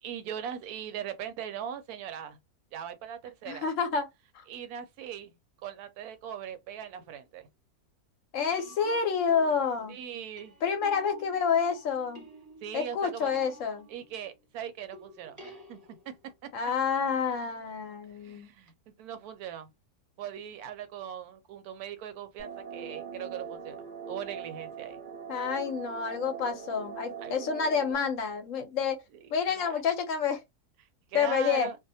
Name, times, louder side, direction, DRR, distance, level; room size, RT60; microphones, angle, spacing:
voice 1, 0.0-2.4 2.7-3.7 4.5-5.3 5.6-7.5 9.9-10.6 12.6-13.3 13.9-16.1 18.2-19.7 20.2-25.0 27.2-27.3 29.1-29.8 31.1-31.8, right 9 dB, 75° right, 1.0 m, -40 dB
voice 2, 3.5-4.1 4.3-4.4 8.3-10.0 10.6-12.3 12.7-13.9 16.5-18.5 25.3-29.0 29.3-30.4 31.1-31.7, left 6 dB, 65° left, 0.9 m, -29 dB
sound 1, 6.8-7.1 8.5-14.4 14.9-16.3 18.7-18.8, right 1 dB, 15° right, 0.8 m, -51 dB
sound 2, 22.4-27.9, right 6 dB, 55° right, 0.5 m, -41 dB
2.7 x 2.1 x 2.6 m
omnidirectional pair, 1.6 m